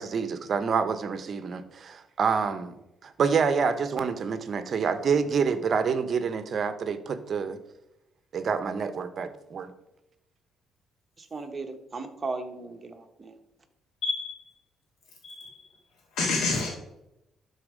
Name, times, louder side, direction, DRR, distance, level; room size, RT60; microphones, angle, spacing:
voice 1, 0.0-2.7 3.0-7.6 8.3-9.7, right 6 dB, 50° right, 0.9 m, -27 dB
voice 2, 11.2-13.4, right 3 dB, 30° right, 1.3 m, -36 dB
voice 3, 14.0-14.5 15.2-15.5 16.1-16.7, left 3 dB, 80° left, 2.3 m, -28 dB
12.0 x 4.2 x 5.0 m
cardioid pair, 90°, 0 cm